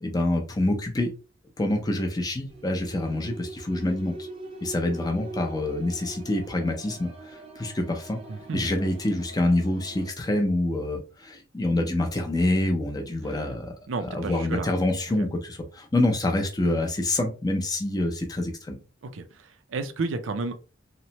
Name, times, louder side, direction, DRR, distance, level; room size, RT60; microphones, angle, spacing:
voice 1, 0.0-1.1 1.6-4.3 4.6-8.2 8.5-13.7 14.1-18.8, left 1 dB, 20° left, 0.5 m, -26 dB
sound 1, 2.5-10.1, right 2 dB, 30° right, 0.6 m, -43 dB
voice 2, 8.3-8.7 13.2-13.4 13.9-14.7 15.2-15.3 19.0-20.5, right 3 dB, 85° right, 0.4 m, -32 dB
3.0 x 2.1 x 2.8 m
head